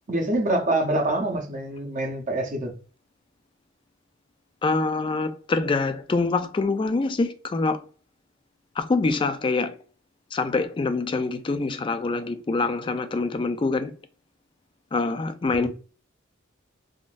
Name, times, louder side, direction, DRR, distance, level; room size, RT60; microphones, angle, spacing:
voice 1, 0.1-2.7 15.6-15.7, right 1 dB, 40° right, 0.7 m, -25 dB
voice 2, 4.6-7.8 8.8-9.8 10.3-13.9 14.9-15.7, left 3 dB, 25° left, 0.3 m, -25 dB
3.6 x 2.5 x 2.4 m
head